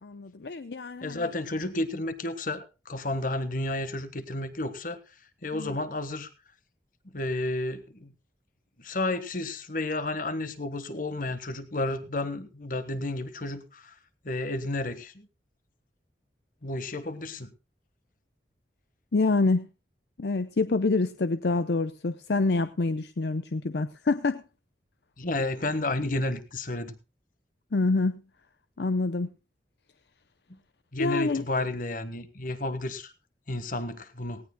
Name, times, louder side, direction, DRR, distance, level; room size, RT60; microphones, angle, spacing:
voice 1, 0.0-1.3 5.5-5.8 19.1-19.7 20.2-24.4 27.7-28.2 28.8-29.3 31.0-31.4, left 3 dB, 65° left, 0.6 m, -26 dB
voice 2, 1.0-5.0 5.4-6.3 7.1-8.1 8.8-13.9 14.2-15.3 16.6-17.5 25.2-26.9 30.9-33.1 33.5-34.4, left 2 dB, 50° left, 1.4 m, -31 dB
18.5 x 17.0 x 2.2 m
head